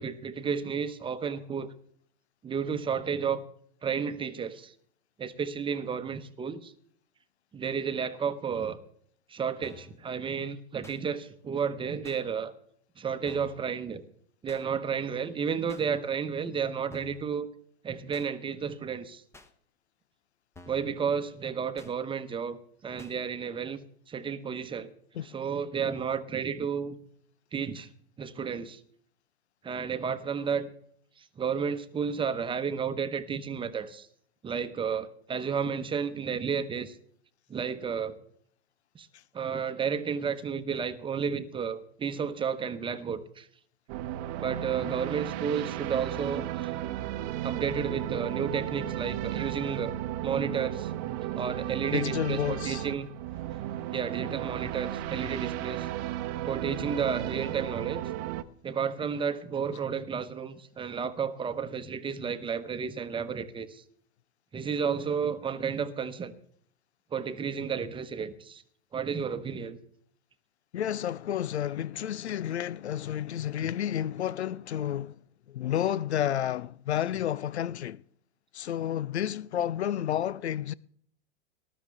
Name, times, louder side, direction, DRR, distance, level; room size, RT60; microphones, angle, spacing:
voice 1, 0.0-1.7 2.4-3.4 3.8-4.7 5.2-6.7 7.5-8.8 9.3-12.5 13.0-14.0 14.4-17.5 17.8-19.2 20.7-22.6 22.8-23.8 24.1-24.9 25.2-27.0 27.5-27.9 28.2-28.8 29.6-30.7 31.2-34.1 34.4-37.0 37.5-38.2 38.9-39.1 39.3-43.5 44.4-46.7 47.4-49.9 50.2-50.9 51.3-53.1 53.9-55.9 56.4-58.0 58.6-63.8 64.5-66.3 67.1-68.6 68.9-69.8, right 6 dB, 15° right, 1.0 m, -32 dB
sound 1, 9.6-10.0 10.8-11.0 12.0-12.2 13.3-13.6 14.5-14.6 15.7-15.9 16.9-17.3 18.1-18.3 19.3-19.5 20.5-20.9 21.8-21.9 23.0-23.2, left 4 dB, 10° left, 1.0 m, -51 dB
sound 2, 43.9-58.4, right 13 dB, 40° right, 0.9 m, -34 dB
voice 2, 51.9-52.8 70.7-75.1 75.5-78.0 78.5-80.7, left 10 dB, 75° left, 0.5 m, -30 dB
19.0 x 12.0 x 3.6 m
figure-of-eight pair, 95°, 33 cm